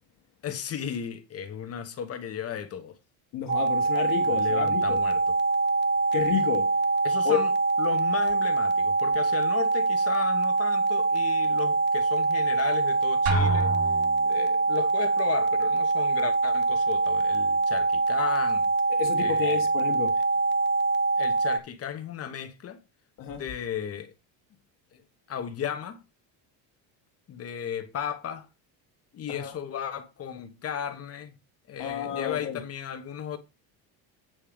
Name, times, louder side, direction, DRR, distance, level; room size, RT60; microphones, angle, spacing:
voice 1, 0.4-3.0 4.3-5.3 7.0-7.5 7.8-13.7 14.2-18.7 19.2-19.7 21.2-22.8 23.3-24.1 24.9-25.0 25.3-26.0 27.3-28.5 29.1-31.3 31.7-33.4, left 9 dB, 30° left, 1.1 m, -35 dB
voice 2, 3.3-5.0 6.1-6.8 7.2-7.4 19.0-20.2 23.2-23.4 29.3-29.6 31.8-32.6, left 10 dB, 45° left, 1.4 m, -30 dB
sound 1, 3.5-21.6, right 3 dB, 25° right, 0.5 m, -24 dB
Drum, 13.3-14.5, right 5 dB, 65° right, 3.2 m, -27 dB
8.8 x 4.4 x 5.1 m
cardioid pair, 165°, 45 cm